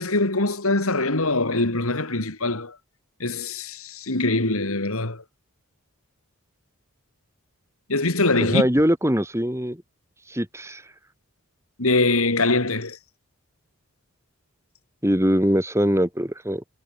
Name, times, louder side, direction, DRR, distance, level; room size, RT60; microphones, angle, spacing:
voice 1, 0.0-2.7 3.2-5.2 7.9-8.6 11.8-13.0, left 2 dB, 75° left, 3.1 m, -23 dB
voice 2, 8.4-9.8 10.3-10.8 15.0-16.6, equal, 10° right, 3.1 m, -22 dB
head